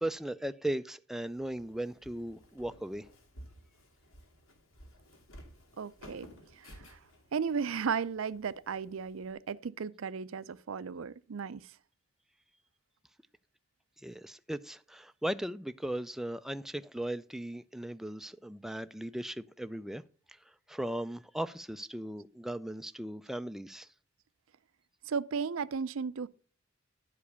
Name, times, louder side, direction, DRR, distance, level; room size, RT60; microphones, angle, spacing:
voice 1, 0.0-3.1 14.0-20.0 20.7-23.9, right 1 dB, ahead, 0.3 m, -37 dB
Walk footsteps, 1.1-9.3, equal, 90° left, 2.6 m, -55 dB
voice 2, 5.8-6.3 6.6-7.0 7.3-11.7 25.1-26.3, right 6 dB, 80° right, 0.5 m, -35 dB
11.0 x 5.0 x 6.8 m
head